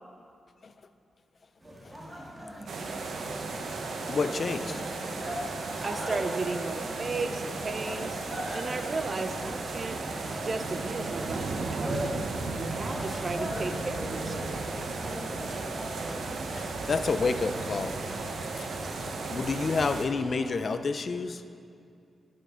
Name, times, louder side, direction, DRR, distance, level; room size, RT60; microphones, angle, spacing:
sound 1, 1.6-20.3, equal, 20° right, 1.7 m, -42 dB
sound 2, 1.9-20.9, equal, 5° right, 0.9 m, -49 dB
sound 3, 2.7-20.1, right 3 dB, 80° right, 0.7 m, -35 dB
voice 1, 4.1-4.8 16.5-18.0 18.5-18.7 19.1-21.4, left 4 dB, 50° left, 11 dB, 0.3 m, -29 dB
voice 2, 5.8-8.2 8.5-10.0 10.4-12.1 12.6-14.5, right 3 dB, 40° right, 8 dB, 0.4 m, -34 dB
10.0 x 5.7 x 3.7 m, 2.4 s
cardioid pair, 85°, 0 cm